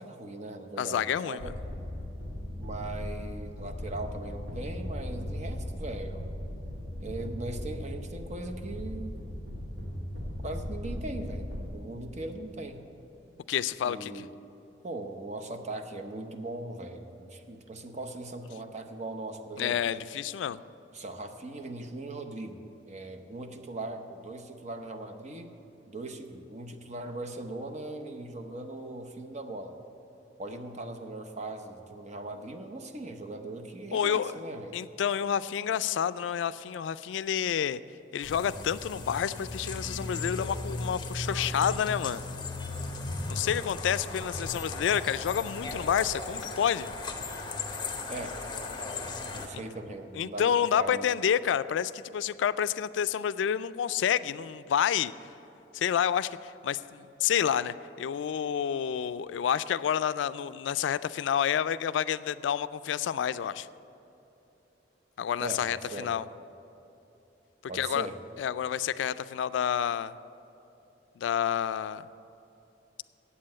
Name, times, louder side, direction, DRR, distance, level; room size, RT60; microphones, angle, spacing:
voice 1, 0.0-1.5 2.6-6.4 7.0-9.2 10.4-12.8 13.8-14.3 14.8-19.8 20.9-22.6 22.9-25.5 25.9-29.8 30.4-34.8 48.1-48.4 49.3-51.1 65.4-65.6 65.9-66.1 67.7-68.2, right 2 dB, 40° right, 5 dB, 0.7 m, -39 dB
voice 2, 0.8-1.5 13.5-14.1 19.6-20.6 33.9-34.4 34.7-37.8 38.1-42.2 43.3-46.9 49.5-49.6 50.1-55.1 55.7-63.7 65.2-66.2 67.7-68.1 68.4-70.1 71.2-72.1, left 8 dB, 85° left, 15 dB, 0.3 m, -29 dB
sound 1, 1.4-11.6, equal, 65° right, 2.1 m, -38 dB
sound 2, 38.2-49.5, left 3 dB, 25° left, 0.9 m, -36 dB
8.3 x 7.5 x 8.8 m, 2.9 s
head